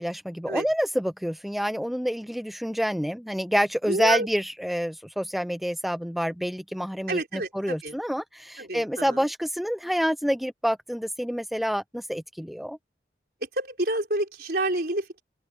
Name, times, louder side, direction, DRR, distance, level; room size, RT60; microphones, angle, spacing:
voice 1, 0.0-12.8, equal, ahead, 0.5 m, -28 dB
voice 2, 3.8-4.3 7.1-7.9 8.6-9.2 13.6-15.2, right 2 dB, 55° right, 4.8 m, -29 dB
head